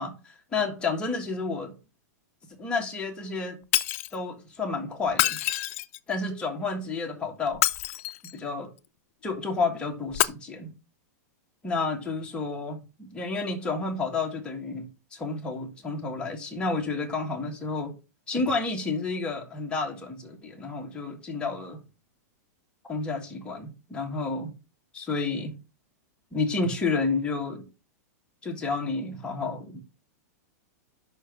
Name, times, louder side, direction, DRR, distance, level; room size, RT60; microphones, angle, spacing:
voice 1, 0.0-1.7 2.6-3.6 4.1-5.4 6.1-7.6 8.3-8.7 9.2-10.7 11.6-17.9 18.3-21.8 22.9-24.5 24.9-25.5 26.3-27.6 28.4-29.8, left 3 dB, 10° left, 1.5 m, -30 dB
Shatter, 3.7-4.2 5.1-6.1 7.5-8.4 10.1-10.2, left 15 dB, 50° left, 0.5 m, -26 dB
5.8 x 4.5 x 6.4 m
supercardioid pair, 155°, 9 cm